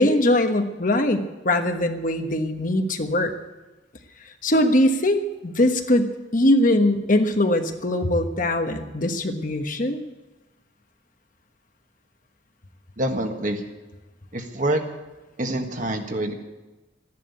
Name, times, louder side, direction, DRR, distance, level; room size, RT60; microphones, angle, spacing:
voice 1, 0.0-3.3 4.4-10.0, left 1 dB, 45° left, 6 dB, 1.3 m, -21 dB
voice 2, 13.0-13.6 14.3-14.8 15.4-16.3, right 1 dB, 45° right, 4 dB, 1.7 m, -26 dB
14.0 x 11.0 x 8.4 m, 1.1 s
head